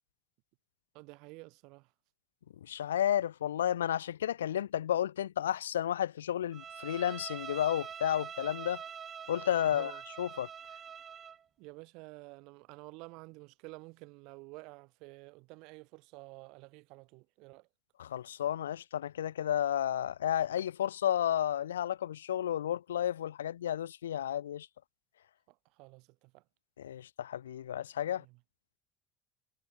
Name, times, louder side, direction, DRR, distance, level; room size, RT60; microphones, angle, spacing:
voice 1, 0.9-1.9 9.7-10.0 11.6-17.7 25.5-26.4 28.0-28.4, right 26 dB, 65° right, 4.5 m, -51 dB
voice 2, 2.7-8.8 9.3-9.9 10.2-10.5 18.0-24.7 26.8-28.2, left 10 dB, 85° left, 0.3 m, -32 dB
Bowed string instrument, 6.5-11.4, right 8 dB, 40° right, 1.1 m, -45 dB
hypercardioid pair, 65°, 0 cm